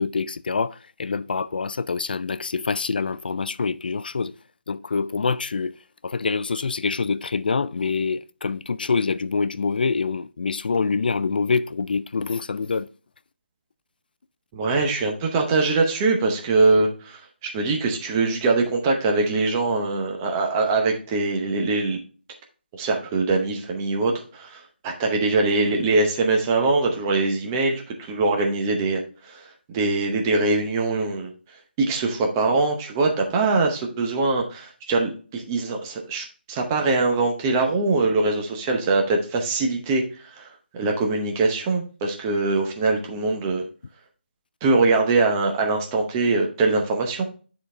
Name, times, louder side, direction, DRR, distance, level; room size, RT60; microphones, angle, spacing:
voice 1, 0.0-4.3 4.7-5.7 6.0-12.9, left 4 dB, 55° left, 0.3 m, -25 dB
voice 2, 14.5-22.0 22.7-31.3 31.8-43.6 44.6-47.2, right 3 dB, 15° right, 0.8 m, -23 dB
9.8 x 4.0 x 3.2 m
figure-of-eight pair, 170°, 6 cm